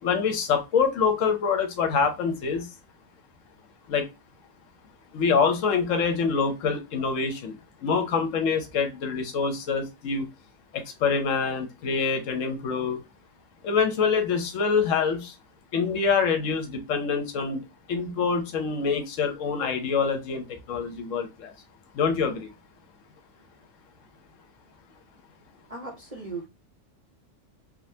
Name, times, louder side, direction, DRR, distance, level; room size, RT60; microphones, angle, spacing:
voice 1, 0.0-2.7 3.9-4.1 5.1-7.5 7.8-10.3 10.7-13.0 13.6-15.4 15.7-17.6 17.9-21.5 21.9-22.5, left 5 dB, 75° left, 1.0 m, -25 dB
voice 2, 25.7-26.5, right 3 dB, 40° right, 0.5 m, -37 dB
3.6 x 2.2 x 2.7 m
omnidirectional pair, 1.4 m